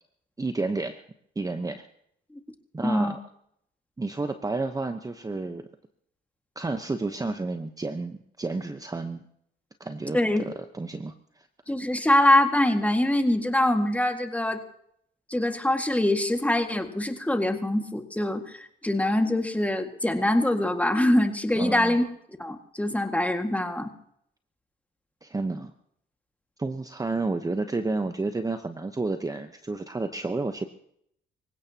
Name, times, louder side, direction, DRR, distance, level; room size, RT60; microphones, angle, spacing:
voice 1, 0.4-1.0 1.4-1.9 2.7-3.2 4.0-5.6 6.6-9.2 9.8-11.5 21.6-22.0 25.2-25.7 26.6-30.6, right 3 dB, 20° right, 8 dB, 0.9 m, -31 dB
voice 2, 2.8-3.2 10.1-10.4 11.7-14.6 15.3-22.1 22.4-23.9, left 1 dB, 5° left, 6 dB, 1.9 m, -24 dB
25.5 x 16.5 x 2.9 m, 0.71 s
cardioid pair, 90°, 20 cm